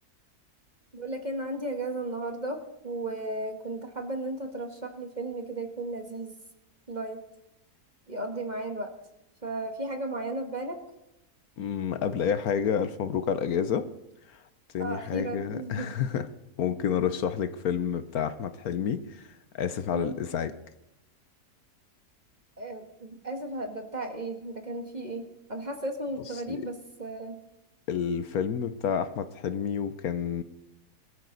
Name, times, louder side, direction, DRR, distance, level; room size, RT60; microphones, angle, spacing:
voice 1, 0.9-6.4 6.9-7.2 8.1-8.9 9.4-10.8 14.8-16.0 19.9-20.2 22.6-27.4, right 2 dB, 30° right, 5 dB, 1.5 m, -35 dB
voice 2, 11.6-13.9 14.7-16.3 16.6-19.3 19.5-20.5 26.5-26.7 27.9-30.4, left 8 dB, 70° left, 11 dB, 1.2 m, -29 dB
21.5 x 14.0 x 4.0 m, 0.92 s
omnidirectional pair, 1.7 m